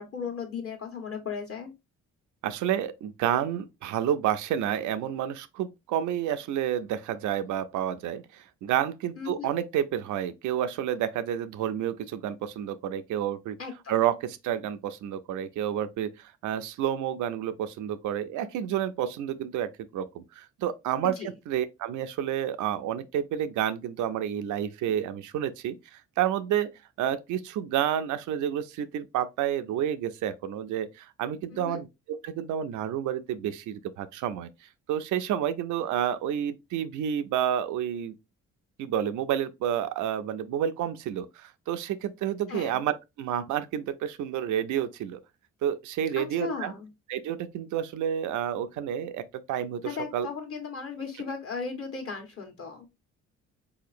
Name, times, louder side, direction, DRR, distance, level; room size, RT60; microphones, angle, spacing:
voice 1, 0.0-1.7 9.2-9.5 13.6-13.9 21.0-21.3 31.5-31.8 42.5-42.8 46.2-46.9 49.8-52.9, left 5 dB, 45° left, 1.3 m, -36 dB
voice 2, 2.4-13.6 13.9-26.7 27.0-34.5 34.9-38.1 38.8-45.2 45.6-46.7 47.1-50.3, right 10 dB, 75° right, 0.5 m, -30 dB
4.1 x 2.8 x 2.5 m
cardioid pair, 90°, 30 cm